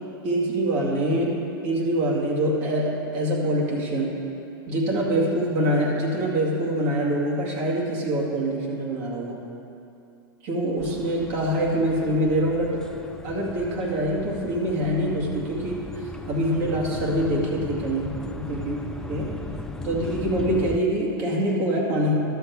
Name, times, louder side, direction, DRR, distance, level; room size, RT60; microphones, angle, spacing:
voice 1, 0.2-1.4 1.6-4.1 4.7-9.4 10.4-12.7 13.2-18.8 19.1-19.3 19.8-22.1, right 1 dB, 50° right, -3 dB, 2.2 m, -25 dB
sound 1, 10.8-20.8, left 2 dB, 5° left, 0.5 m, -37 dB
11.5 x 6.9 x 4.7 m, 2.7 s
hypercardioid pair, 105°, 12 cm